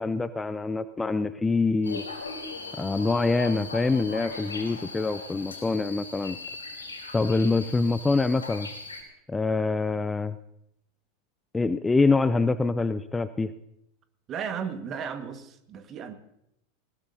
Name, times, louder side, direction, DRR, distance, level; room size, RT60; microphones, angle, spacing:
voice 1, 0.0-2.1 2.8-6.4 7.1-8.7 9.3-10.4 11.5-13.5, left 3 dB, 15° left, 13 dB, 0.5 m, -25 dB
sound 1, 1.8-9.0, left 3 dB, 90° left, 3.4 m, -39 dB
voice 2, 14.3-16.1, right 7 dB, 35° right, 8 dB, 1.6 m, -35 dB
20.0 x 19.5 x 2.8 m, 0.78 s
figure-of-eight pair, 85°, 0 cm